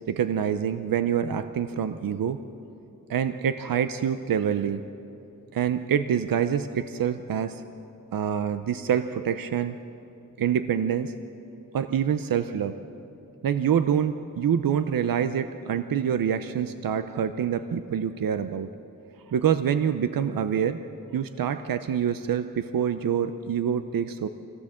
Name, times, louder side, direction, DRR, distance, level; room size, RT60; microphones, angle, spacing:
voice 1, 0.1-2.4 3.1-4.8 5.5-7.6 8.1-9.8 10.4-11.1 11.7-12.8 13.4-18.7 19.3-20.8 21.1-24.3, right 8 dB, 85° right, 10 dB, 0.7 m, -26 dB
24.5 x 17.0 x 7.6 m, 2.8 s
wide cardioid pair, 175°, 33 cm